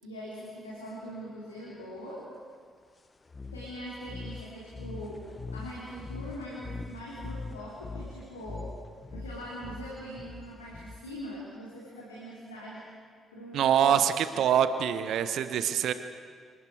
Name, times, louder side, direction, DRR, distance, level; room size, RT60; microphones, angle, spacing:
voice 1, 0.0-2.3 3.5-5.3 5.5-8.7 9.1-12.8 13.3-14.2, equal, 80° left, -6 dB, 3.4 m, -42 dB
sound 1, 3.3-11.3, left 3 dB, 30° left, 1.3 m, -42 dB
voice 2, 13.5-15.9, right 9 dB, 60° right, 12 dB, 0.9 m, -25 dB
27.0 x 24.0 x 4.8 m, 2.1 s
figure-of-eight pair, 40°, 0 cm